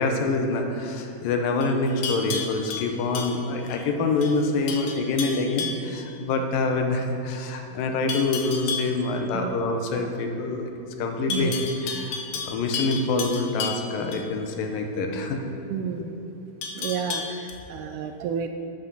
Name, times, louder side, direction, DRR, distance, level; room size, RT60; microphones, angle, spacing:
voice 1, 0.0-10.6 11.0-15.4, left 3 dB, 85° left, 4 dB, 2.6 m, -26 dB
Livestock farm animals working animals, 1.6-3.8 4.2-4.4 4.7-5.9 8.1-9.0 11.3-14.3 16.6-17.5, left 5 dB, 70° left, 2.0 m, -33 dB
voice 2, 11.3-11.7 15.7-16.3 16.8-18.5, right 7 dB, 80° right, 7 dB, 1.9 m, -31 dB
12.0 x 8.3 x 4.0 m, 2.9 s
omnidirectional pair, 3.9 m